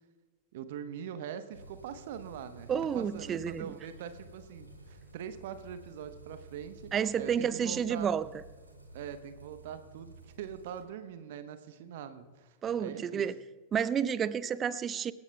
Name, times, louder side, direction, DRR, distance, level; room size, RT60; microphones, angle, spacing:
voice 1, 0.5-8.1 8.9-13.3, right 8 dB, 55° right, 10 dB, 1.0 m, -43 dB
sound 1, 1.5-10.8, right 2 dB, 85° right, 3.7 m, -53 dB
voice 2, 2.7-3.7 6.9-8.3 12.6-13.4 13.7-15.1, right 8 dB, 25° right, 18 dB, 0.5 m, -30 dB
26.5 x 15.0 x 2.3 m, 1.3 s
figure-of-eight pair, 90°, 0 cm